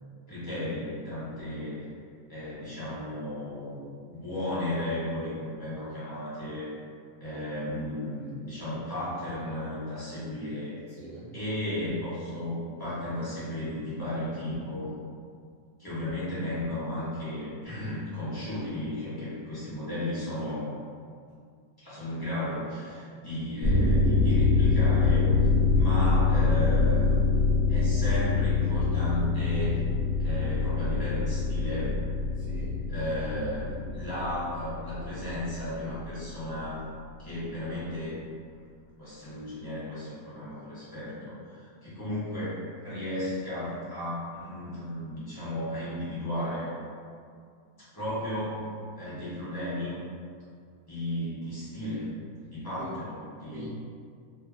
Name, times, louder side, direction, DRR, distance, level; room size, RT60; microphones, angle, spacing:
voice 1, 0.3-1.8 2.3-6.7 7.2-10.7 11.3-14.9 15.8-20.7 21.8-25.3 25.7-27.3 27.7-29.8 30.2-31.9 32.9-36.8 37.2-38.2 39.0-46.7 47.9-48.7 49.0-50.0 50.9-52.1 52.4-53.7, left 1 dB, 20° left, -11 dB, 0.6 m, -34 dB
voice 2, 10.9-11.3 32.3-32.8 52.8-52.9 53.5-53.7, left 1 dB, 40° right, -13 dB, 0.8 m, -44 dB
sound 1, 23.6-35.7 36.0-36.1, left 4 dB, 80° left, 1.0 m, -25 dB
2.7 x 2.2 x 2.4 m, 2.2 s
omnidirectional pair, 1.5 m